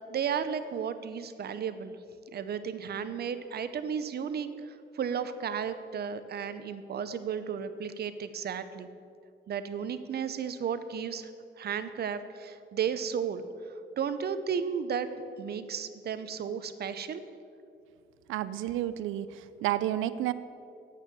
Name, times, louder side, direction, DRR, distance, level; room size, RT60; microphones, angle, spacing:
voice 1, 0.1-2.0 2.3-8.9 9.5-11.3 11.6-13.4 14.0-15.1 15.4-17.2, right 7 dB, 55° right, 12 dB, 0.8 m, -34 dB
voice 2, 18.3-20.3, right 13 dB, 85° right, 15 dB, 0.5 m, -31 dB
9.1 x 8.5 x 6.9 m, 2.4 s
cardioid pair, 90°, 20 cm